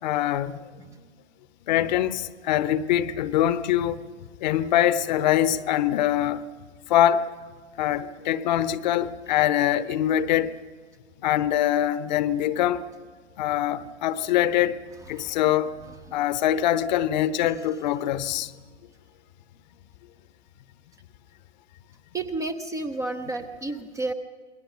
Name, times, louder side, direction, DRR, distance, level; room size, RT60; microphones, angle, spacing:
voice 1, 0.0-0.7 1.7-4.0 4.4-6.5 6.9-7.3 7.8-10.6 11.2-12.8 13.4-15.7 16.1-18.5, left 11 dB, 40° left, 0.9 m, -23 dB
voice 2, 22.1-24.1, right 2 dB, 10° right, 0.6 m, -31 dB
28.0 x 21.5 x 6.0 m
figure-of-eight pair, 110°, 35 cm